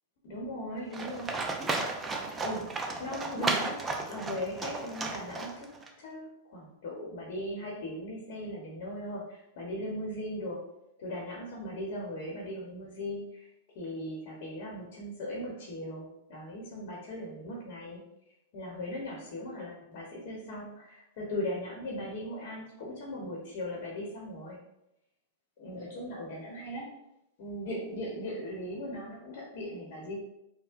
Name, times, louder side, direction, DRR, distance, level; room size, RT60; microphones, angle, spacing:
voice 1, 0.2-1.3 2.4-2.6 3.0-5.7 6.0-10.6 11.0-13.5 13.7-18.0 18.5-24.6 25.6-26.9 27.4-30.2, left 1 dB, 55° left, -3 dB, 0.9 m, -38 dB
Livestock farm animals working animals, 0.9-5.9, right 3 dB, 20° right, 0.5 m, -34 dB
4.3 x 2.1 x 2.5 m, 0.83 s
hypercardioid pair, 100°, 0 cm